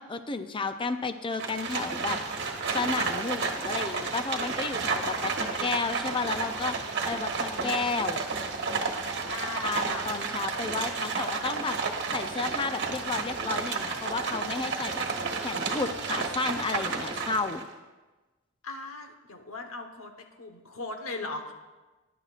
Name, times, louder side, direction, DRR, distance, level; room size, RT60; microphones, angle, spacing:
voice 1, 0.0-2.2 2.7-6.8 7.1-8.2 9.6-11.8 12.1-15.0 15.4-17.6, left 4 dB, 25° left, 9 dB, 0.5 m, -32 dB
Livestock farm animals working animals, 1.3-17.7, right 4 dB, 55° right, 1.3 m, -31 dB
voice 2, 9.2-10.2 18.6-21.5, left 3 dB, 80° left, 5 dB, 1.2 m, -39 dB
17.5 x 11.0 x 2.5 m, 1.2 s
head